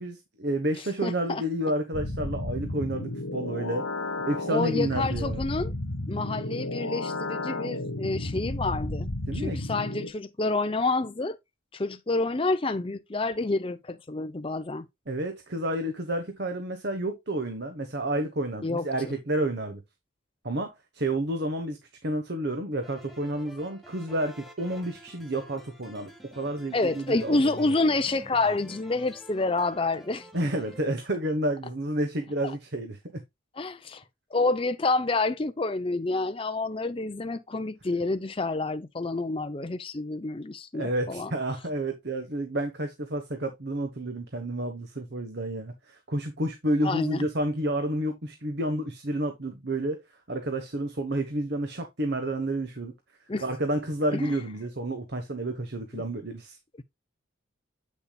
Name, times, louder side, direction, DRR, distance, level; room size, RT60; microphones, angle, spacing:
voice 1, 0.0-3.9 4.2-5.5 9.3-9.6 15.1-19.8 20.4-27.7 30.3-33.2 40.7-50.0 50.3-52.9 53.4-56.6, right 1 dB, 50° right, 1.1 m, -30 dB
voice 2, 1.0-1.4 4.5-5.7 6.1-9.1 9.3-11.4 11.7-14.9 18.6-19.1 26.7-30.3 33.6-34.0 34.3-41.3 46.8-47.3 53.3-53.4 54.1-54.4 55.9-56.1, left 3 dB, 25° left, 0.5 m, -28 dB
sound 1, 1.9-10.1, left 2 dB, 80° left, 1.4 m, -33 dB
sound 2, 22.8-30.9, right 1 dB, ahead, 1.3 m, -49 dB
8.5 x 6.7 x 2.3 m
head